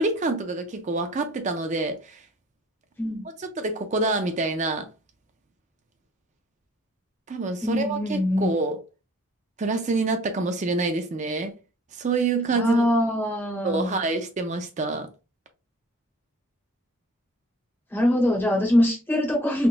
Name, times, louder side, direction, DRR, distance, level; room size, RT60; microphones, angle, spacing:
voice 1, 0.0-2.2 3.4-4.9 7.3-8.8 9.6-11.5 11.9-12.8 13.6-15.1, right 3 dB, 35° right, 0.4 m, -26 dB
voice 2, 7.6-8.5 12.5-14.0 17.9-19.7, left 1 dB, 10° left, 0.9 m, -23 dB
3.6 x 2.4 x 2.5 m
head